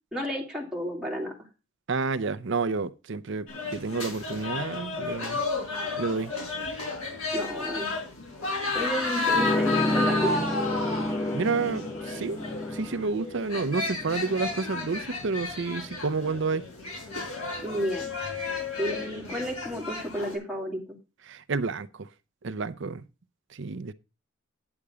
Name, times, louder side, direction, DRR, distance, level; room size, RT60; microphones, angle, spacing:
voice 1, 0.1-1.3 7.3-7.9 8.7-10.3 17.6-18.1 18.8-20.8, equal, 5° right, 2.2 m, -32 dB
voice 2, 1.9-5.4 5.9-6.3 11.3-12.4 12.7-16.7 21.3-22.1 22.4-23.1 23.5-23.9, right 4 dB, 55° right, 0.6 m, -30 dB
sound 1, 3.5-20.3, left 3 dB, 75° left, 4.9 m, -32 dB
sound 2, 9.3-14.6, left 1 dB, 15° left, 0.6 m, -30 dB
9.8 x 6.8 x 4.9 m
head